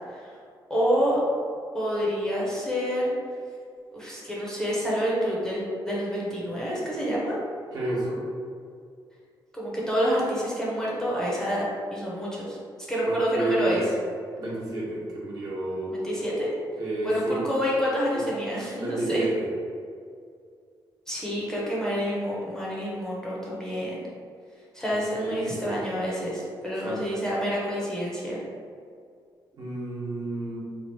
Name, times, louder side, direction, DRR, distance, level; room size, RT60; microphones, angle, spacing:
voice 1, 0.7-1.2 1.7-3.1 3.9-7.4 9.5-11.6 11.9-12.6 12.9-13.9 15.9-16.5 17.0-19.3 21.1-24.0 24.7-28.4, equal, 5° left, -6 dB, 0.6 m, -28 dB
voice 2, 7.7-8.2 13.0-13.8 14.4-15.9 16.8-17.4 18.8-19.4 24.9-25.8 26.8-27.0 29.6-30.6, right 1 dB, 55° right, -6 dB, 1.1 m, -31 dB
2.9 x 2.5 x 4.2 m, 2.3 s
cardioid pair, 150°, 8 cm